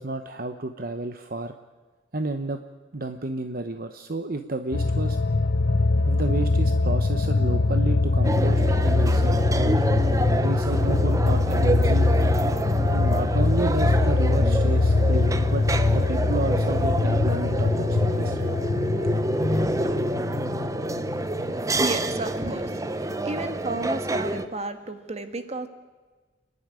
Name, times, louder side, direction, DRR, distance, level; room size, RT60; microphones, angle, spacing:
voice 1, 0.0-1.5 2.1-2.6 2.9-5.2 6.1-9.8 10.4-12.1 12.9-15.6 15.9-18.5, right 2 dB, 50° right, 7 dB, 1.0 m, -31 dB
sound 1, 4.7-22.2 22.6-22.7, left 3 dB, 75° left, 0.7 m, -23 dB
sound 2, 8.2-24.5, right 1 dB, 20° right, 0.8 m, -28 dB
voice 2, 21.7-22.8 23.2-25.7, right 2 dB, 35° right, 8 dB, 1.6 m, -32 dB
29.0 x 11.0 x 9.8 m, 1.3 s
head